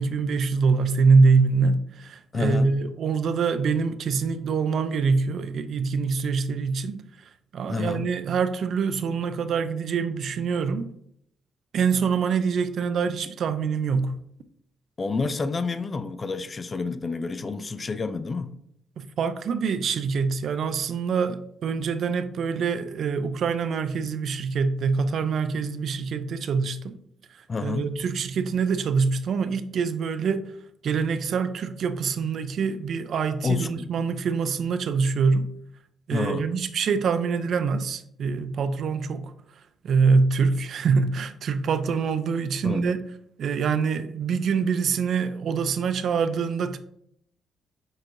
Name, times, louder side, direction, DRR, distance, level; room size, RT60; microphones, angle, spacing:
voice 1, 0.0-7.0 7.5-10.9 11.7-14.1 19.0-27.0 27.3-30.5 30.8-35.5 36.1-39.3 39.8-43.0 43.4-46.8, right 5 dB, 60° right, 0.4 m, -25 dB
voice 2, 2.3-2.7 7.7-8.1 15.0-18.5 27.5-27.9 33.4-33.9 36.1-36.4 42.6-42.9, left 4 dB, 30° left, 0.4 m, -29 dB
6.3 x 2.9 x 2.6 m
cardioid pair, 90°, 0 cm